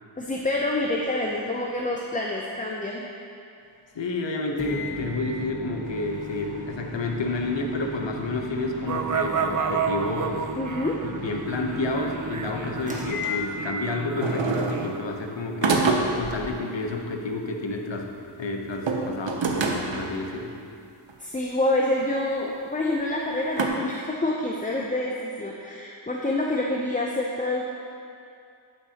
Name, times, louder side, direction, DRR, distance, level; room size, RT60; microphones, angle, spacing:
voice 1, 0.2-3.0 10.6-11.0 21.2-27.7, left 1 dB, 15° left, -2 dB, 0.5 m, -27 dB
voice 2, 3.9-10.5 11.0-15.9 16.1-18.1 18.4-20.5, left 2 dB, 65° left, 2 dB, 0.9 m, -30 dB
Microwave oven, 4.6-14.0, left 2 dB, 15° right, 1.2 m, -37 dB
sound 1, 8.9-15.0, right 6 dB, 40° right, 0.5 m, -31 dB
sound 2, 14.2-15.0 15.6-16.4 18.7-20.1 21.1-21.2 22.0-22.1 23.6-23.7, right 3 dB, 65° right, 0.8 m, -25 dB
8.9 x 7.9 x 2.9 m, 2.5 s
wide cardioid pair, 75°, 48 cm